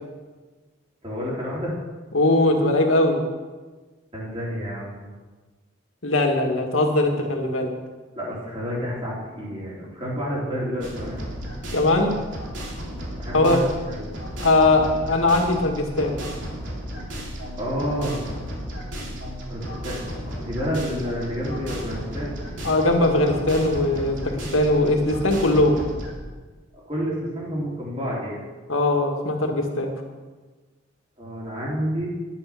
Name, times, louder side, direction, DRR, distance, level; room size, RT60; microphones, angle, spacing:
voice 1, 1.0-1.8 4.1-5.1 8.1-11.2 13.2-14.0 17.6-18.3 19.5-20.0 20.3-22.3 26.9-28.4 31.2-32.1, equal, 30° right, -5 dB, 3.7 m, -29 dB
voice 2, 2.1-3.2 6.0-7.7 11.7-12.2 13.3-13.6 14.4-16.2 22.6-25.8 28.7-29.9, left 2 dB, 85° left, 2 dB, 2.0 m, -20 dB
sound 1, 10.8-26.1, equal, 70° right, 2.9 m, -34 dB
11.0 x 11.0 x 5.9 m, 1.3 s
head